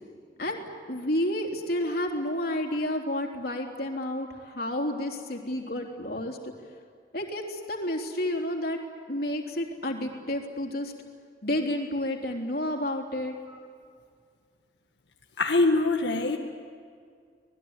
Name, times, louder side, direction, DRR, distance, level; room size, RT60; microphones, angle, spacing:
voice 1, 0.4-6.4 7.1-8.8 9.1-10.9 11.4-13.4, left 1 dB, 55° left, 2 dB, 3.6 m, -30 dB
voice 2, 15.4-16.4, left 2 dB, 90° left, 1 dB, 1.8 m, -23 dB
26.0 x 20.0 x 9.8 m, 2.1 s
head